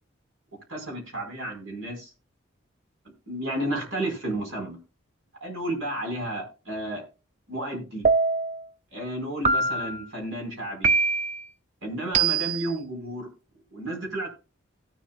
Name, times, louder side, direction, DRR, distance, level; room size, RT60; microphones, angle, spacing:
voice 1, 0.7-2.1 3.3-4.8 5.4-7.0 7.5-8.1 8.9-10.9 11.8-13.3 13.7-14.3, right 1 dB, 85° right, 2 dB, 4.7 m, -32 dB
sound 1, 8.0-8.6 9.4-10.0 10.8-11.4 12.1-12.7, right 4 dB, 35° right, 0.5 m, -23 dB
17.5 x 7.4 x 2.4 m, 0.32 s
head